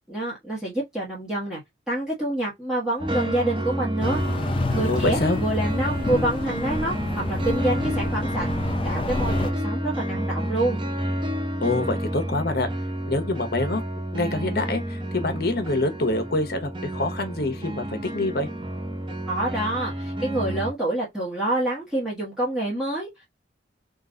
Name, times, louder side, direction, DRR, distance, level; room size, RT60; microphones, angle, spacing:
voice 1, 0.1-1.6 1.9-4.2 4.5-10.8 19.3-23.3, right 1 dB, 5° right, 1.2 m, -27 dB
sound 1, 3.0-20.7, right 1 dB, 25° right, 0.7 m, -30 dB
sound 2, 4.0-9.5, left 2 dB, 30° left, 0.4 m, -29 dB
voice 2, 4.9-5.4 11.6-12.7 13.1-13.8 14.1-18.5, left 2 dB, 55° left, 1.0 m, -26 dB
3.8 x 2.5 x 3.8 m
head